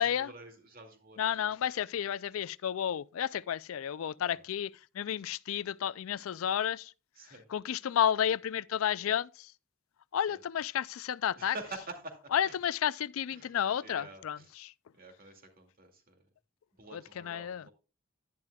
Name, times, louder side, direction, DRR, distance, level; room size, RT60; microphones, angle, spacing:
voice 1, 0.0-1.8 4.2-4.4 7.2-7.5 10.3-10.4 11.4-12.5 13.3-13.6 13.8-14.5 14.9-16.2 16.8-17.7, right 2 dB, 45° right, 2.3 m, -48 dB
voice 2, 1.2-6.9 7.5-9.5 10.1-11.5 12.3-14.7 16.9-17.6, left 9 dB, 80° left, 0.4 m, -31 dB
11.0 x 10.5 x 2.3 m
head